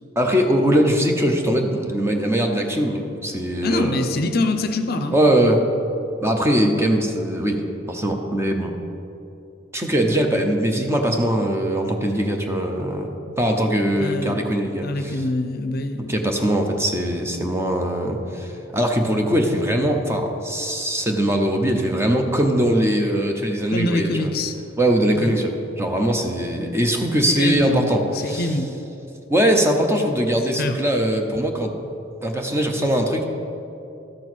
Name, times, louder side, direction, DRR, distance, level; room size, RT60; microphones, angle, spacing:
voice 1, 0.2-4.1 5.1-5.6 6.2-7.6 7.9-8.7 9.7-13.1 13.4-15.2 16.0-24.3 24.8-28.5 29.3-31.7 32.2-33.2, right 1 dB, 15° right, 3 dB, 0.7 m, -21 dB
voice 2, 3.6-5.2 13.9-16.2 23.7-24.6 25.1-25.4 27.3-27.9 28.1-28.7 30.4-30.8, left 2 dB, 55° left, 8 dB, 0.6 m, -25 dB
12.5 x 4.5 x 6.1 m, 2.8 s
head